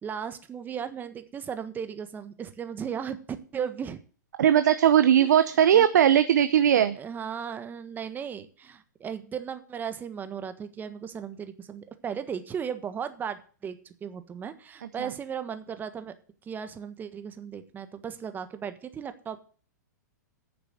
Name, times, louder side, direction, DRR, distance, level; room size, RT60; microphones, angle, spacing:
voice 1, 0.0-4.0 5.2-5.9 6.9-16.1 16.4-19.4, right 7 dB, 20° right, 10 dB, 1.3 m, -36 dB
voice 2, 4.4-7.0 15.0-15.1, right 10 dB, 65° right, 11 dB, 0.8 m, -19 dB
10.0 x 6.8 x 7.9 m, 0.40 s
hypercardioid pair, 115°, 10 cm